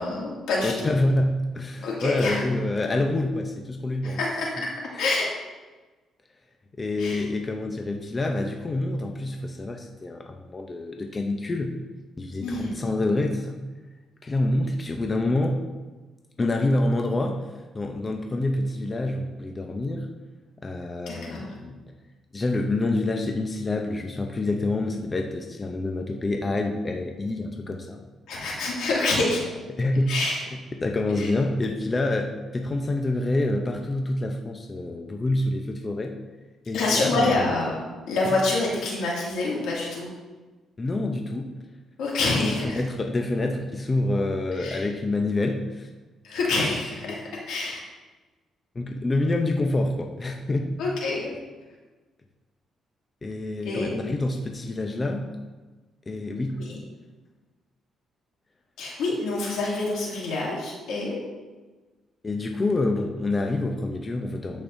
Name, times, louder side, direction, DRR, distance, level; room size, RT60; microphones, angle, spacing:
voice 1, 0.0-0.9 1.8-2.4 4.0-4.5 5.0-5.3 7.0-7.2 12.4-12.7 21.1-21.5 28.3-29.4 30.1-30.4 31.2-31.3 36.7-40.1 42.0-42.8 44.6-44.8 46.2-47.2 47.5-47.8 50.8-51.3 53.6-53.9 56.6-56.8 58.8-61.2, left 2 dB, 85° left, -4 dB, 2.4 m, -26 dB
voice 2, 0.6-4.2 4.9-5.0 6.8-11.8 12.2-13.6 14.2-15.7 16.4-17.4 17.7-20.1 20.6-21.8 22.3-28.0 29.7-30.1 30.8-36.1 36.7-37.5 38.3-38.4 40.8-41.5 42.5-45.9 47.0-47.2 48.7-50.6 53.2-55.4 56.1-56.6 62.2-64.6, left 2 dB, 30° left, 3 dB, 0.7 m, -27 dB
13.0 x 5.3 x 2.7 m, 1.2 s
cardioid pair, 90°, 0 cm